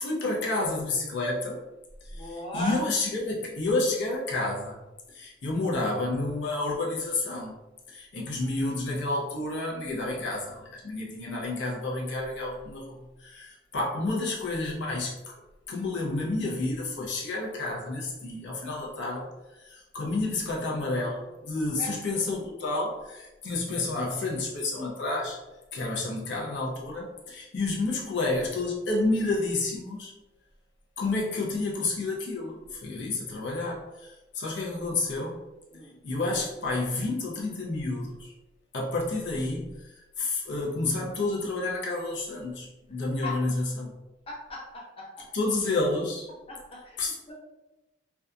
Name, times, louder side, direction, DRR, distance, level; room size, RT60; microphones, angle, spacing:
voice 1, 0.0-1.6 2.0-4.8 5.1-7.6 7.9-15.2 15.7-19.3 19.6-25.4 25.7-30.1 31.0-35.4 36.0-38.3 38.7-43.9 45.3-46.3 47.0-47.2, left 2 dB, 70° left, -3 dB, 0.5 m, -30 dB
voice 2, 2.1-2.8 21.8-21.9 35.7-36.0 43.2-43.4 44.3-45.3 46.5-47.0 47.3-47.4, left 1 dB, 30° left, -3 dB, 0.6 m, -37 dB
2.6 x 2.2 x 2.4 m, 1.0 s
head